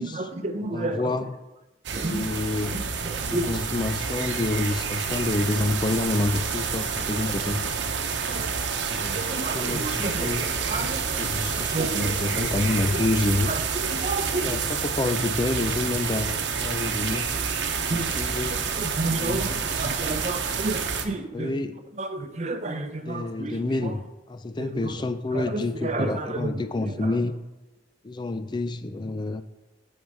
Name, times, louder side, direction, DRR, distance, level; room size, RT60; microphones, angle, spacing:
voice 1, 0.0-1.1 1.9-2.3 2.7-3.5 8.3-8.5 9.1-10.3 10.7-11.2 11.6-12.4 13.5-13.6 13.9-14.6 17.9-18.1 18.8-21.5 22.0-23.5 24.6-24.7 25.3-26.5, right 2 dB, 40° right, 8 dB, 0.7 m, -31 dB
voice 2, 0.7-1.4 2.1-2.8 3.3-8.0 8.9-10.5 10.7-13.5 14.3-17.3 17.9-18.6 19.2-19.6 21.3-21.8 23.0-27.4 28.0-29.4, left 2 dB, 25° left, 10 dB, 0.4 m, -28 dB
sound 1, 1.8-21.0, right 6 dB, 75° right, 0.9 m, -28 dB
11.0 x 5.5 x 4.8 m, 1.0 s
head